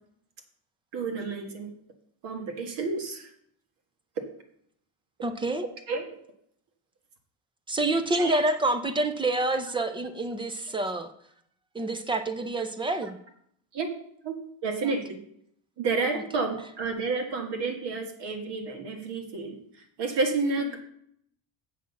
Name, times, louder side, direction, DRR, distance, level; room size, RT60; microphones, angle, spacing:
voice 1, 0.9-1.7 2.2-3.3 5.6-6.2 8.2-8.4 13.7-13.9 14.2-14.4 14.6-15.2 15.8-19.6 20.0-20.8, right 3 dB, 60° right, 4 dB, 1.8 m, -30 dB
voice 2, 5.2-5.7 7.7-11.1 11.7-13.2 14.8-14.9 16.1-16.2, right 2 dB, 10° right, 9 dB, 0.3 m, -27 dB
7.5 x 6.1 x 7.0 m, 0.69 s
cardioid pair, 170°, 47 cm